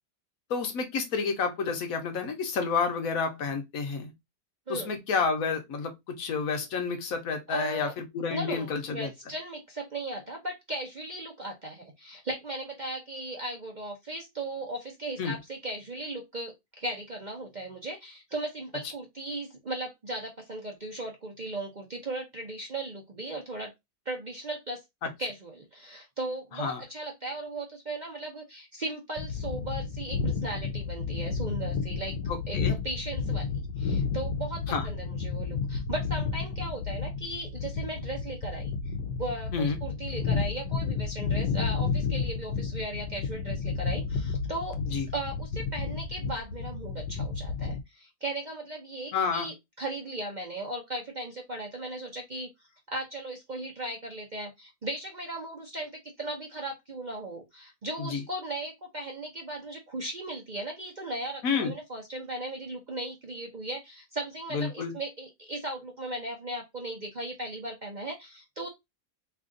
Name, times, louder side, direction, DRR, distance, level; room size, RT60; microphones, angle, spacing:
voice 1, 0.5-4.1 4.7-9.1 15.2-15.4 25.0-25.1 26.6-26.8 32.3-32.7 34.7-34.9 39.5-39.8 44.9-45.1 49.1-49.5 58.0-58.2 61.4-61.7 64.5-64.9, left 5 dB, 60° left, 1.2 m, -30 dB
voice 2, 7.5-7.9 8.3-23.7 24.1-24.8 25.2-32.2 32.5-38.9 39.2-44.8 45.1-68.7, right 2 dB, 40° right, 0.6 m, -37 dB
sound 1, 29.2-47.8, left 5 dB, 85° left, 1.3 m, -31 dB
3.3 x 2.5 x 3.7 m
omnidirectional pair, 1.8 m